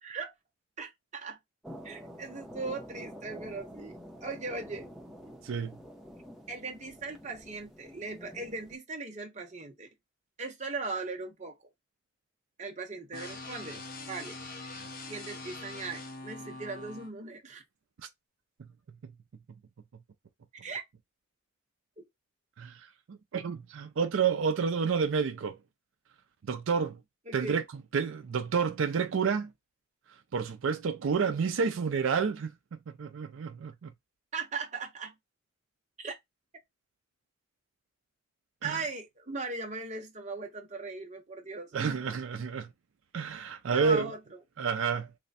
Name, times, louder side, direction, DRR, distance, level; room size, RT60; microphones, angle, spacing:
voice 1, 0.0-0.3 0.8-1.4 1.8-4.9 6.5-9.9 10.4-11.6 12.6-13.8 14.1-14.4 15.1-17.6 20.6-20.8 22.0-22.1 27.3-27.6 34.3-35.1 36.0-36.1 38.6-42.2 43.7-44.2, right 3 dB, 35° right, 0.8 m, -39 dB
sound 1, 1.6-8.8, equal, ahead, 0.7 m, -48 dB
voice 2, 5.4-5.8 19.0-19.1 22.6-25.6 26.5-27.0 27.3-27.6 27.9-29.5 30.3-32.5 33.0-33.9 38.6-38.8 41.7-42.7 43.1-44.1 44.6-45.1, right 6 dB, 75° right, 0.4 m, -29 dB
sound 2, 13.1-17.1, left 2 dB, 45° left, 0.7 m, -43 dB
3.3 x 2.1 x 4.0 m
head